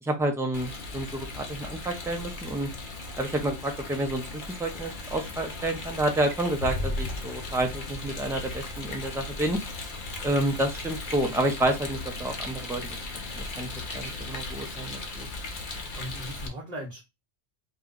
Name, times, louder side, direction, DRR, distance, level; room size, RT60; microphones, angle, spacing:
voice 1, 0.0-2.7 3.2-9.6 10.2-12.9 13.3-15.3, right 1 dB, 5° right, 3 dB, 0.5 m, -29 dB
Rain, 0.5-16.5, left 3 dB, 55° left, 0.9 m, -38 dB
Explosion, 6.6-9.9, left 1 dB, 75° left, 1.1 m, -35 dB
voice 2, 10.0-10.4 15.7-17.0, equal, 40° right, -2 dB, 1.0 m, -40 dB
4.4 x 2.3 x 3.8 m, 0.24 s
omnidirectional pair, 1.1 m